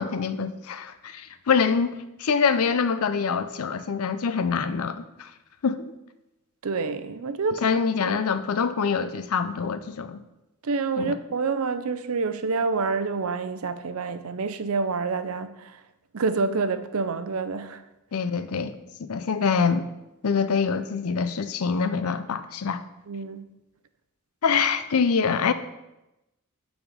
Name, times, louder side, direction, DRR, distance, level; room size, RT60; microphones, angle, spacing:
voice 1, 0.0-5.3 5.6-5.9 7.6-10.2 11.0-11.2 18.1-19.9 20.2-22.8 24.4-25.5, left 5 dB, 80° left, 0.5 m, -25 dB
voice 2, 6.6-7.6 8.0-8.2 10.6-15.7 16.1-17.8 23.1-23.5, right 4 dB, 75° right, 0.5 m, -27 dB
8.9 x 4.2 x 5.0 m
head